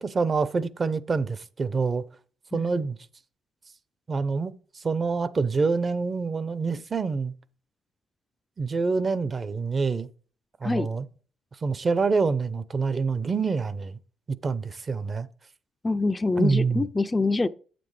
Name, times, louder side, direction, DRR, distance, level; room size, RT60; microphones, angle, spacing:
voice 1, 0.0-2.0 2.5-3.0 4.1-7.3 8.6-10.1 10.6-11.1 11.6-14.0 14.3-15.3 16.4-16.9, right 4 dB, 35° right, 0.7 m, -26 dB
voice 2, 15.8-17.5, left 3 dB, 20° left, 0.4 m, -25 dB
8.7 x 7.7 x 3.3 m
cardioid pair, 90°, 0 cm